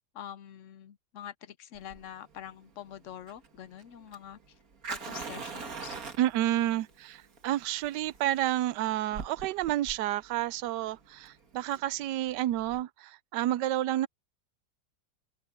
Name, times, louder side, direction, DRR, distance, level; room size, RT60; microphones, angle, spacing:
voice 1, 0.1-4.5 4.9-6.0 6.6-6.8, left 10 dB, 60° left, 0.8 m, -45 dB
Fire, 1.7-12.8, right 4 dB, 55° right, 2.3 m, -44 dB
voice 2, 6.2-14.1, right 13 dB, 85° right, 1.2 m, -30 dB
open air
omnidirectional pair, 1.8 m